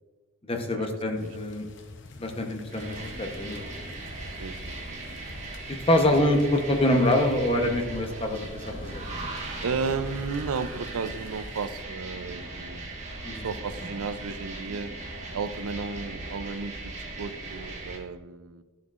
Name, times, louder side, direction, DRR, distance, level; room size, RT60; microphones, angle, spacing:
voice 1, 0.5-1.7 2.2-3.7 5.9-9.0 13.2-13.5, left 1 dB, 25° left, 4 dB, 0.8 m, -25 dB
sound 1, 1.1-11.7, left 1 dB, 55° left, 0.8 m, -46 dB
sound 2, 2.7-18.0, right 2 dB, 35° right, 1.2 m, -38 dB
voice 2, 4.4-5.2 6.1-6.2 9.6-12.9 13.3-14.9 15.3-18.6, right 5 dB, 90° right, 13 dB, 0.5 m, -34 dB
11.5 x 7.4 x 2.4 m, 1.4 s
head